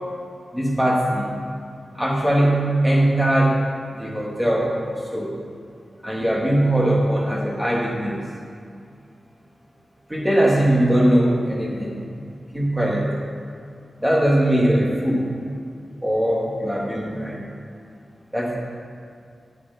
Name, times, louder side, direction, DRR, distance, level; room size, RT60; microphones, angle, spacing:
voice 1, 0.5-1.3 1.9-3.6 4.0-5.4 6.0-8.2 10.1-12.0 12.5-13.1 14.0-15.3 16.0-17.4 18.3-18.6, right 1 dB, 10° right, -3 dB, 2.1 m, -20 dB
9.4 x 8.1 x 4.1 m, 2.4 s
cardioid pair, 65°, 0 cm